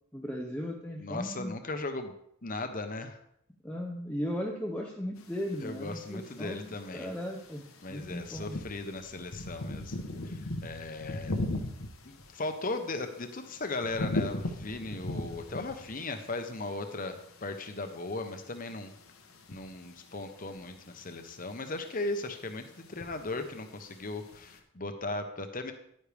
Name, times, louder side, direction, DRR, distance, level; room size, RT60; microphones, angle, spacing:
voice 1, 0.1-1.6 3.6-6.7 6.9-8.6, equal, 5° left, -1 dB, 0.8 m, -37 dB
voice 2, 1.0-2.1 2.4-3.2 5.6-7.1 7.8-10.0 10.2-11.7 12.0-18.9 19.5-25.7, left 2 dB, 40° left, 7 dB, 1.0 m, -37 dB
sound 1, 5.2-24.6, left 1 dB, 70° left, 1.1 m, -41 dB
11.0 x 9.7 x 3.5 m, 0.74 s
head